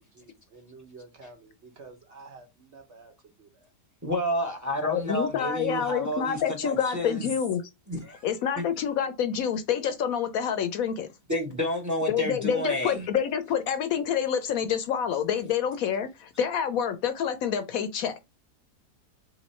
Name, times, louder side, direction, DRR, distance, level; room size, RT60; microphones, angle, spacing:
voice 1, 0.1-3.7, right 3 dB, 50° right, 1.0 m, -50 dB
voice 2, 4.0-7.3 7.9-8.3 8.6-8.7 11.3-13.1, equal, 15° right, 0.7 m, -30 dB
voice 3, 4.8-7.6 8.2-11.1 12.1-18.2, left 8 dB, 70° left, 0.9 m, -27 dB
3.6 x 3.0 x 4.2 m
omnidirectional pair, 1.7 m